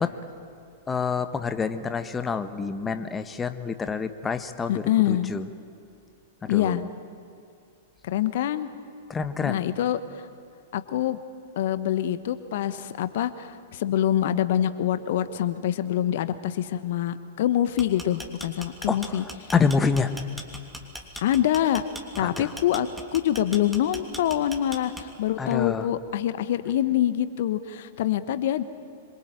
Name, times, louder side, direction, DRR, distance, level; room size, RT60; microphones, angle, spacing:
voice 1, 0.9-5.5 6.4-6.8 9.1-9.6 18.9-19.0 19.5-20.1 22.2-22.5 25.4-25.8, left 5 dB, 15° left, 10 dB, 1.3 m, -27 dB
voice 2, 4.7-5.3 6.5-6.8 8.0-8.7 9.4-10.3 10.7-11.2 11.6-19.5 21.2-21.8 22.2-28.6, left 11 dB, 60° left, 12 dB, 1.2 m, -25 dB
sound 1, 17.6-25.3, equal, 5° right, 3.0 m, -39 dB
26.0 x 23.0 x 9.1 m, 2.6 s
figure-of-eight pair, 105°, 0 cm